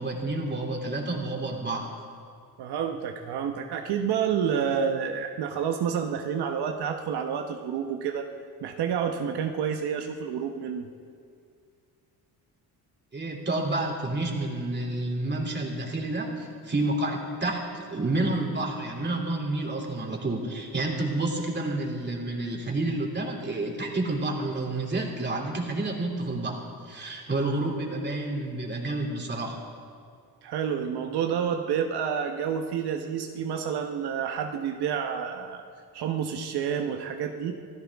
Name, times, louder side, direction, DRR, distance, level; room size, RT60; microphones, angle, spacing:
voice 1, 0.0-1.9 13.1-29.6, right 2 dB, 25° right, 0 dB, 3.1 m, -29 dB
voice 2, 2.6-8.3 8.6-10.9 30.4-35.6 35.9-37.5, right 7 dB, 80° right, 4 dB, 1.2 m, -29 dB
26.0 x 15.5 x 3.6 m, 2.3 s
cardioid pair, 110°, 39 cm